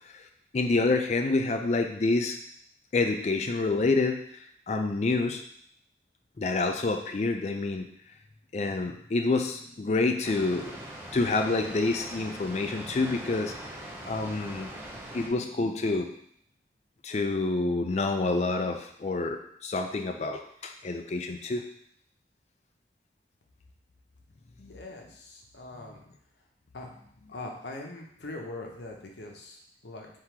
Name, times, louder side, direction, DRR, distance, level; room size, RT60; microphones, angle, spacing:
voice 1, 0.5-2.4 2.9-4.2 4.7-5.4 6.4-7.9 8.5-10.7 11.1-13.5 14.1-14.7 15.1-16.1 17.0-21.6, left 3 dB, 40° left, 5 dB, 0.4 m, -27 dB
Water, 10.2-15.3, right 1 dB, 10° right, 0.5 m, -42 dB
voice 2, 24.6-26.0 26.7-26.9 27.3-30.1, left 2 dB, 75° left, 0 dB, 0.8 m, -42 dB
3.7 x 2.8 x 4.5 m, 0.67 s
head